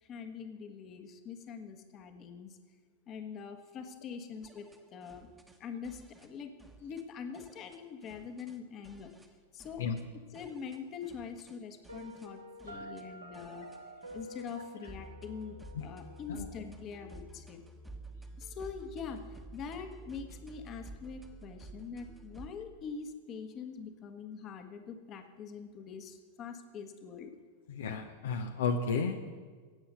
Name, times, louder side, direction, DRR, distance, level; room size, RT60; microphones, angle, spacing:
voice 1, 0.0-2.6 3.1-5.3 5.6-6.5 6.8-9.1 9.5-9.8 10.3-13.7 14.1-17.6 18.4-27.3, left 6 dB, 30° left, 7 dB, 1.4 m, -44 dB
sound 1, 4.4-5.6 5.8-6.3 6.6-7.0 7.3-8.6 8.8-9.3 9.6-10.0 10.3-11.6 11.8-12.3 12.6-13.0 13.3-14.6 14.8-22.6, right 2 dB, 10° right, 1.2 m, -51 dB
Piano, 11.9-16.8, right 1 dB, 80° right, 1.8 m, -49 dB
voice 2, 27.7-29.2, left 5 dB, 60° left, 6 dB, 0.8 m, -33 dB
17.0 x 7.1 x 6.7 m, 1.5 s
figure-of-eight pair, 90°, 0 cm